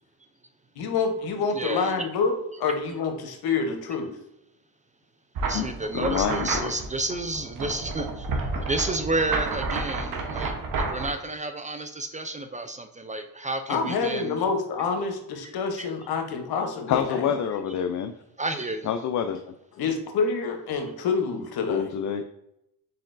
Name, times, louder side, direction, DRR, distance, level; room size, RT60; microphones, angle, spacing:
voice 1, 0.8-4.1 13.7-17.3 19.8-21.9, left 5 dB, 70° left, 5 dB, 0.9 m, -27 dB
voice 2, 1.5-2.0 3.5-3.6 5.5-8.3 8.6-14.4 15.8-15.9 18.4-18.9, right 2 dB, 20° right, 7 dB, 0.4 m, -31 dB
sound 1, 5.4-11.1, right 3 dB, 65° right, 1.0 m, -30 dB
voice 3, 5.5-6.7 16.9-18.1 18.8-19.4 21.7-22.2, left 8 dB, 50° left, 7 dB, 0.4 m, -27 dB
4.2 x 4.0 x 2.5 m, 0.81 s
supercardioid pair, 70°, 38 cm